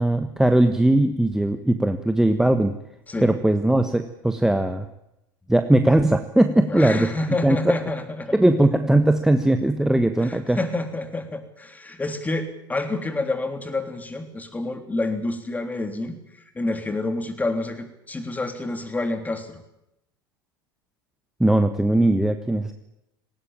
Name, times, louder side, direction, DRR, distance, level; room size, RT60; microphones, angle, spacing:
voice 1, 0.0-2.7 3.2-4.8 5.5-7.1 7.4-7.7 8.3-10.6 21.4-22.7, right 1 dB, 5° right, 8 dB, 1.3 m, -19 dB
voice 2, 6.7-8.4 10.2-16.1 16.5-19.6, left 2 dB, 15° left, 7 dB, 3.4 m, -28 dB
19.0 x 18.5 x 8.9 m, 0.85 s
hypercardioid pair, 85°, 12 cm